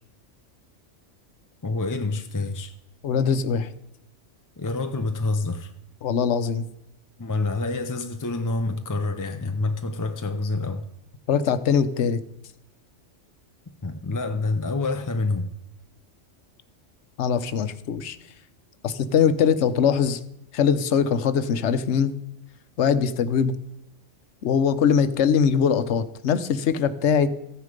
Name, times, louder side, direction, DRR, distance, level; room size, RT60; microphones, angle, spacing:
voice 1, 1.6-2.7 4.6-5.7 7.2-10.9 13.8-15.5, left 3 dB, 25° left, 0.4 m, -27 dB
voice 2, 3.0-3.7 6.0-6.7 11.3-12.2 17.2-18.2 18.8-20.2 20.5-22.1 22.8-23.6 24.4-27.3, left 7 dB, 70° left, 1.1 m, -22 dB
14.5 x 9.8 x 5.2 m
omnidirectional pair, 1.3 m